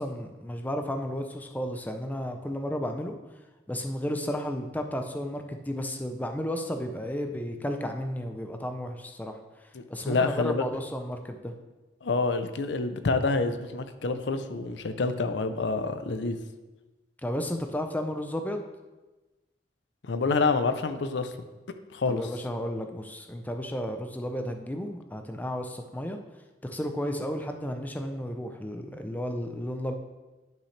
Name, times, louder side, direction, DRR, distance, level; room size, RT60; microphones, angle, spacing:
voice 1, 0.0-3.2 3.7-9.4 9.9-11.5 17.2-18.6 22.1-26.2 26.6-29.9, equal, 10° left, 5 dB, 0.5 m, -33 dB
voice 2, 9.7-10.6 12.0-16.4 20.0-21.3 21.9-22.2, left 3 dB, 75° left, 9 dB, 0.6 m, -27 dB
10.5 x 5.8 x 3.3 m, 1.1 s
head